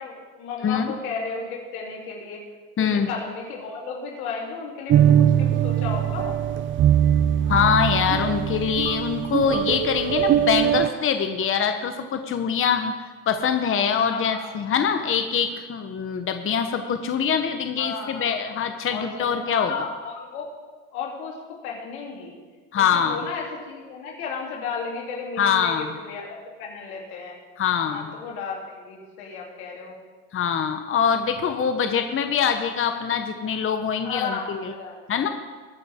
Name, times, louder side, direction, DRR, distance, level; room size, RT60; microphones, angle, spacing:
voice 1, 0.0-2.4 2.8-6.4 14.0-14.5 17.8-18.3 18.9-20.5 20.9-22.4 22.8-27.3 27.8-29.9 34.0-35.2, left 5 dB, 85° left, -2 dB, 3.4 m, -34 dB
voice 2, 2.8-3.1 7.5-12.9 13.3-19.7 22.7-23.2 25.4-25.9 27.6-28.1 30.3-34.7 35.1-35.3, left 7 dB, 30° left, 7 dB, 1.0 m, -24 dB
sound 1, 4.9-10.9, right 10 dB, 30° right, 0.5 m, -21 dB
21.5 x 8.7 x 3.7 m, 1.4 s
hypercardioid pair, 85°, 42 cm